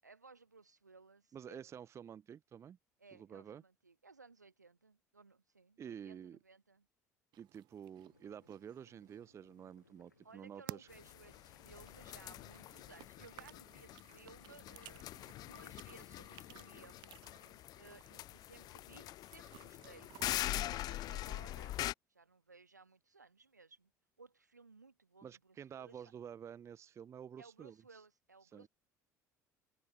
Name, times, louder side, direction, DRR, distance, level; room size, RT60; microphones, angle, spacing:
voice 1, 0.0-1.6 3.0-6.9 10.2-15.1 15.4-17.2 17.8-20.1 20.8-21.7 22.1-23.9 24.2-26.0 27.4-28.7, right 4 dB, 85° right, 1.6 m, -60 dB
voice 2, 1.3-2.8 3.1-3.6 5.8-6.4 7.4-10.9 20.5-20.7 25.2-27.8 28.5-28.7, right 8 dB, 30° right, 0.5 m, -50 dB
sound 1, 7.3-21.1, right 17 dB, 55° right, 3.3 m, -58 dB
sound 2, 7.9-17.6, left 4 dB, 85° left, 6.1 m, -70 dB
sound 3, 10.9-21.9, left 15 dB, 45° left, 0.5 m, -44 dB
figure-of-eight pair, 60°, 9 cm